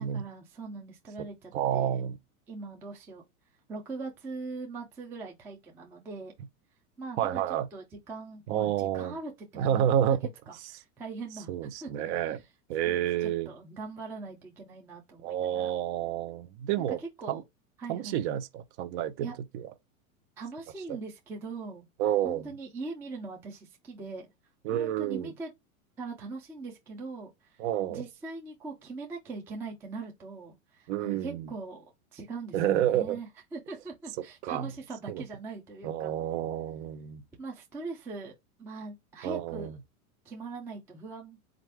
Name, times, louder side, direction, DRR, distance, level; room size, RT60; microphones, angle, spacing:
voice 1, 0.0-2.0 2.5-3.2 3.7-6.3 7.0-7.4 7.7-9.9 10.5-11.9 12.8-13.0 13.2-15.7 17.0-17.4 17.8-18.2 19.2-19.4 20.4-21.9 22.2-24.3 24.7-25.5 26.0-27.6 27.9-36.2 37.4-38.3 38.6-39.8 40.3-41.4, right 3 dB, 5° right, 0.3 m, -41 dB
voice 2, 1.5-2.2 7.2-7.7 8.5-9.1 9.6-10.2 11.5-12.4 12.7-13.5 15.2-17.0 17.3-17.4 17.9-19.3 19.5-19.7 20.9-21.0 22.0-22.5 24.6-25.3 27.6-28.0 30.9-31.5 32.5-33.2 34.4-34.7 35.1-35.2 35.8-37.2 39.2-39.7, right 11 dB, 50° right, 0.7 m, -29 dB
4.4 x 2.5 x 3.2 m
supercardioid pair, 140°, 43 cm